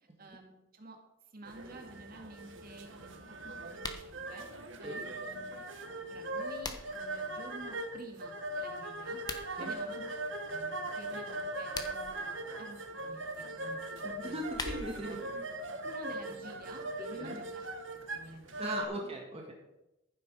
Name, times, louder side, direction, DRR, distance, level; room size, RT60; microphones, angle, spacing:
voice 1, 0.2-1.0 1.3-9.2 9.6-10.1 10.5-14.4 15.7-17.6 17.9-19.1, right 1 dB, 45° right, 3 dB, 2.1 m, -50 dB
sound 1, 1.5-18.8, right 2 dB, 65° right, 1.6 m, -40 dB
sound 2, 3.7-4.1 6.1-7.1 9.1-9.5 11.5-12.2 14.2-15.1, left 3 dB, 20° left, 1.1 m, -42 dB
voice 2, 14.0-15.2 17.2-17.4 18.6-19.5, right 1 dB, 30° right, 0 dB, 1.7 m, -39 dB
14.5 x 8.0 x 5.3 m, 0.94 s
head